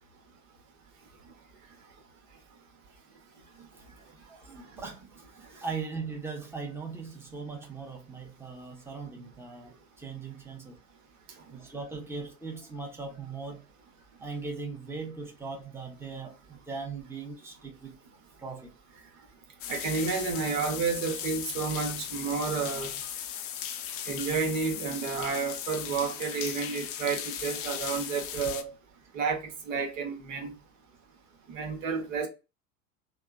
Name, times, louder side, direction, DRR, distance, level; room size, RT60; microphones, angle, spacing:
voice 1, 4.3-5.1 5.5-10.8 11.5-13.7 14.2-18.0 18.4-18.7, right 4 dB, 5° right, 0.8 m, -39 dB
sound 1, 19.6-28.6, left 10 dB, 35° left, 0.4 m, -37 dB
voice 2, 19.7-23.0 24.0-28.7 29.1-30.5 31.5-32.3, right 5 dB, 65° right, 1.1 m, -31 dB
3.4 x 2.2 x 2.2 m
hypercardioid pair, 85°, 43 cm